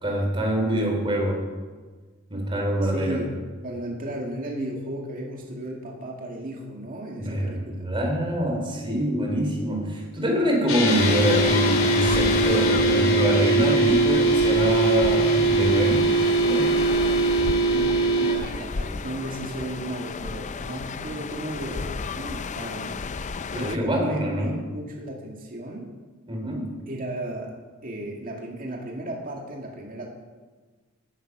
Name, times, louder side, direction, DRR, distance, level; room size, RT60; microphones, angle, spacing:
voice 1, 0.0-1.4 2.3-3.2 7.2-16.1 16.4-16.7 23.5-24.6 26.3-26.7, equal, 25° right, 0 dB, 3.8 m, -25 dB
voice 2, 2.8-3.3 3.6-7.8 17.7-23.0 23.5-25.9 26.9-27.5 27.8-30.1, right 1 dB, 40° right, -1 dB, 2.2 m, -34 dB
sound 1, 10.7-18.3, right 3 dB, 70° left, 3.6 m, -21 dB
sound 2, 10.9-23.8, left 5 dB, 35° left, 0.5 m, -32 dB
16.0 x 10.0 x 6.1 m, 1.4 s
head